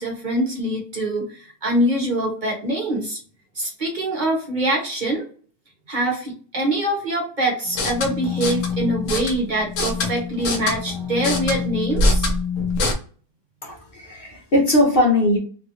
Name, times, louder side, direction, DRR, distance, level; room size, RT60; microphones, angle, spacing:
voice 1, 0.0-3.2 3.5-5.2 5.9-12.3, right 1 dB, 40° right, -1 dB, 0.9 m, -24 dB
sound 1, 7.7-12.9, left 3 dB, 85° left, 1.1 m, -24 dB
voice 2, 13.6-15.4, left 1 dB, 50° left, -1 dB, 0.9 m, -19 dB
3.0 x 2.5 x 2.8 m, 0.42 s
omnidirectional pair, 1.3 m